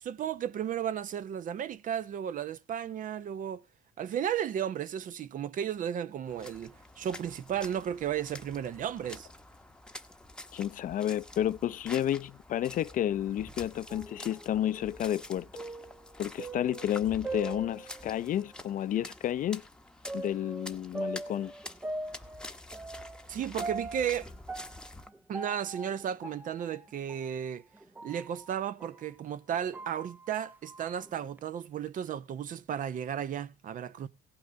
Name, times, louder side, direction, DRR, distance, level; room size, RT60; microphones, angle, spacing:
voice 1, 0.0-3.6 4.0-9.3 23.3-24.3 25.3-27.6 28.0-34.1, right 9 dB, 50° right, 0.7 m, -34 dB
sound 1, 6.3-25.1, left 1 dB, 5° left, 0.9 m, -48 dB
voice 2, 10.5-15.5 16.2-19.6 20.1-21.5, left 11 dB, 50° left, 0.5 m, -31 dB
sound 2, 13.9-18.5 19.0-19.1 20.1-29.1 29.5-31.4, right 2 dB, 10° right, 0.5 m, -42 dB
17.0 x 5.9 x 5.1 m
cardioid pair, 110°, 17 cm